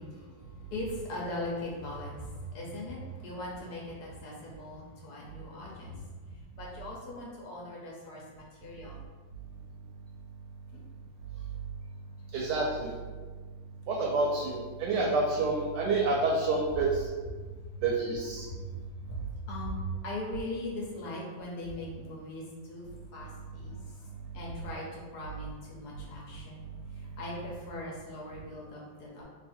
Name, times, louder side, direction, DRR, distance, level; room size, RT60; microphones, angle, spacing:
voice 1, 0.0-9.0 10.7-10.8 17.6-17.7 18.4-18.6 19.0-22.9 23.1-24.1 24.3-26.6 26.9-29.2, left 1 dB, 65° left, -3 dB, 1.1 m, -40 dB
voice 2, 12.3-12.9 13.9-17.0 17.8-18.5, right 3 dB, 75° right, -1 dB, 1.1 m, -28 dB
3.0 x 2.5 x 4.2 m, 1.4 s
omnidirectional pair, 2.1 m